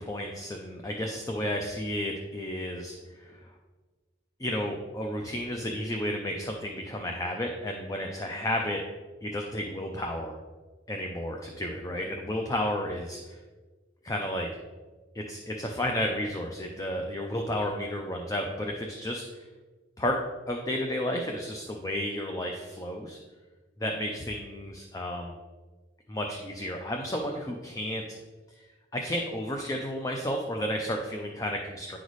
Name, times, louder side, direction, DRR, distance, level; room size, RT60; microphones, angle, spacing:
voice 1, 0.0-3.5 4.4-8.8 9.2-10.4 10.9-13.4 14.0-14.5 15.1-19.4 20.0-20.2 20.5-23.2 23.8-25.3 26.1-28.2 28.9-32.0, left 1 dB, 15° left, 2 dB, 0.4 m, -32 dB
10.5 x 4.0 x 3.1 m, 1.3 s
head